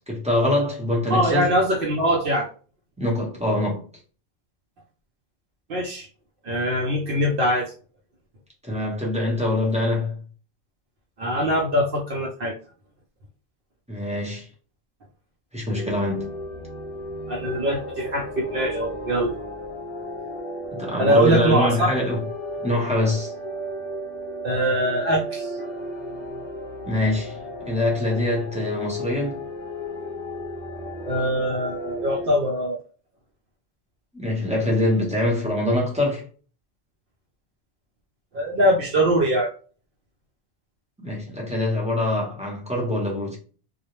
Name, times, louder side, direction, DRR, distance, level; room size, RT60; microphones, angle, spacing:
voice 1, 0.1-1.5 3.0-3.8 8.6-10.2 13.9-14.5 15.5-16.3 20.7-22.2 22.6-23.3 26.8-29.4 34.1-36.2 41.0-43.4, left 1 dB, 5° right, 0.6 m, -24 dB
voice 2, 1.1-2.5 5.7-6.1 6.4-7.7 11.2-12.5 17.3-19.3 21.0-21.9 24.4-25.7 31.1-32.8 38.3-39.5, equal, 60° right, 0.7 m, -22 dB
sound 1, 15.7-32.3, equal, 40° left, 0.6 m, -34 dB
2.3 x 2.0 x 3.0 m
omnidirectional pair, 1.2 m